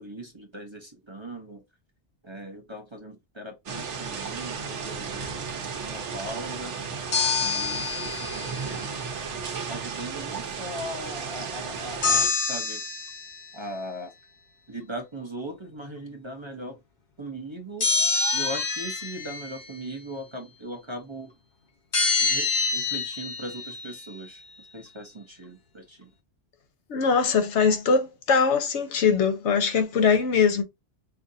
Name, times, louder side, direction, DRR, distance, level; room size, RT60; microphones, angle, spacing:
voice 1, 0.0-1.6 2.2-5.5 5.8-6.8 7.4-9.0 9.7-12.8 13.5-14.1 14.7-16.8 17.2-17.9 18.3-21.4 22.2-24.4 24.7-26.1, right 1 dB, 30° right, 0.8 m, -39 dB
sound 1, 3.7-12.3, right 5 dB, 85° right, 1.1 m, -34 dB
sound 2, 7.1-8.8 12.0-13.5 17.8-19.7 21.9-24.1, left 4 dB, 45° left, 0.9 m, -26 dB
voice 2, 26.9-30.6, left 5 dB, 80° left, 1.1 m, -22 dB
5.5 x 2.5 x 2.6 m
omnidirectional pair, 1.2 m